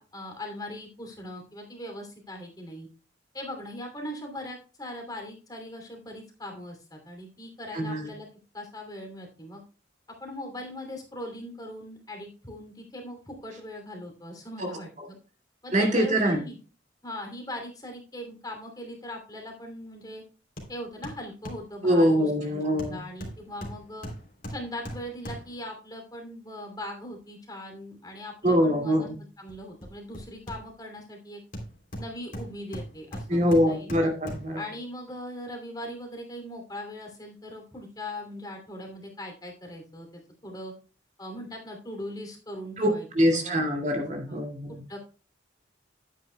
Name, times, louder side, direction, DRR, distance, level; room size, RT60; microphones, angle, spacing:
voice 1, 0.0-2.9 3.3-8.3 8.5-9.6 10.2-15.2 15.6-16.6 17.0-20.2 20.7-24.1 24.5-31.4 32.0-33.9 34.6-40.7 41.2-43.5 44.3-44.4 44.9-45.0, left 1 dB, 20° left, 2 dB, 2.8 m, -40 dB
voice 2, 7.7-8.1 14.6-14.7 15.7-16.4 21.8-23.0 28.4-29.1 33.3-34.6 42.8-42.9 43.1-44.8, equal, 40° right, 2 dB, 2.3 m, -24 dB
Hammer, 20.6-20.8 21.0-21.7 22.8-25.7 29.5-31.0 31.5-34.6 35.1-35.2, equal, 45° left, 3.1 m, -40 dB
12.0 x 9.3 x 2.2 m, 0.34 s
head